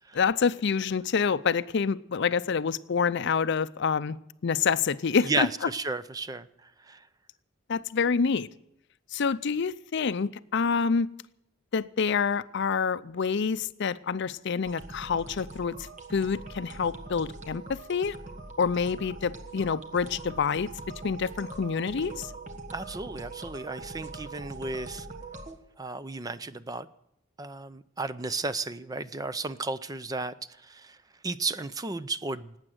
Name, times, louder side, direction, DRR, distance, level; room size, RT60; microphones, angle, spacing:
voice 1, 0.2-4.2 4.4-5.5 7.7-8.5 9.1-11.1 11.7-15.7 16.1-18.2 18.6-20.7 21.0-22.3, left 5 dB, 60° left, 15 dB, 0.5 m, -27 dB
voice 2, 5.2-7.0 22.7-25.1 25.8-26.9 27.4-30.3 30.6-31.0 31.2-32.6, right 3 dB, 20° right, 14 dB, 0.5 m, -33 dB
sound 1, 14.6-25.6, right 2 dB, 35° right, 1.5 m, -42 dB
18.5 x 8.9 x 7.7 m, 0.80 s
head